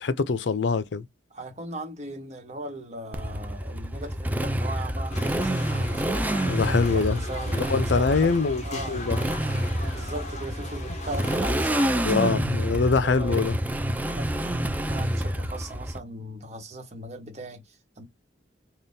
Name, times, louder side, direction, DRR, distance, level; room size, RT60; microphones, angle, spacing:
voice 1, 0.0-1.1 6.5-7.2 7.5-8.6 8.9-9.2 12.0-13.6, left 4 dB, 70° left, 0.5 m, -24 dB
voice 2, 1.3-6.3 6.9-9.1 9.7-12.5 12.9-13.5 14.1-18.0, right 1 dB, 35° right, 1.2 m, -38 dB
Motorcycle, 3.1-16.0, right 1 dB, 10° right, 0.4 m, -28 dB
sound 1, 5.1-11.9, left 2 dB, 40° left, 0.9 m, -39 dB
3.5 x 2.4 x 2.7 m
head